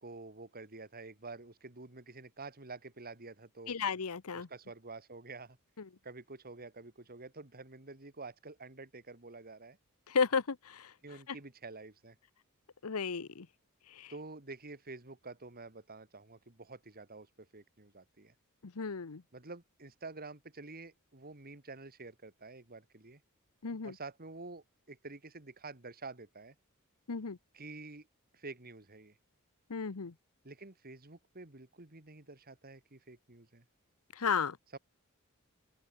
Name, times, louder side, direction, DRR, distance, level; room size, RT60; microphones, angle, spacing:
voice 1, 0.0-3.8 4.3-5.6 6.0-9.8 11.0-12.2 14.1-18.3 19.3-23.2 23.8-26.5 27.5-28.1 28.3-29.1 30.4-33.6 34.7-34.8, right 3 dB, 45° right, 2.5 m, -49 dB
voice 2, 3.7-4.5 10.1-10.6 12.8-13.5 18.8-19.2 23.6-23.9 27.1-27.4 29.7-30.1 34.2-34.6, left 5 dB, 75° left, 0.9 m, -32 dB
open air
head